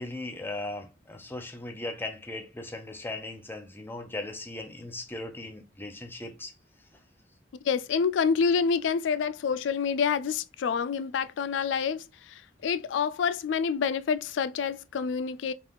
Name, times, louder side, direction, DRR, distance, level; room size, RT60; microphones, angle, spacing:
voice 1, 0.0-6.5 6.8-6.9, left 2 dB, 10° left, 0.6 m, -38 dB
voice 2, 7.6-15.5, left 6 dB, 70° left, 0.3 m, -27 dB
3.7 x 2.4 x 3.5 m
head